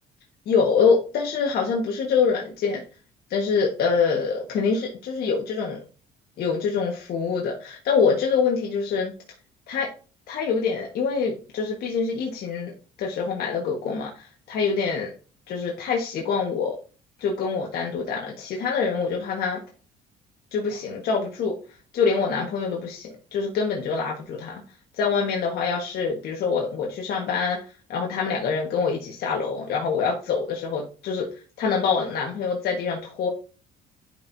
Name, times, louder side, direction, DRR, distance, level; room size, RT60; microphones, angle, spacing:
voice 1, 0.4-2.8 3.3-5.8 6.4-9.1 9.7-9.9 10.3-12.7 13.0-15.1 15.5-16.7 17.2-19.6 20.5-21.5 21.9-24.6 25.0-27.6 27.9-31.3 31.6-33.3, left 5 dB, 70° left, -1 dB, 1.5 m, -25 dB
11.5 x 4.7 x 2.7 m, 0.37 s
cardioid pair, 110°, 17 cm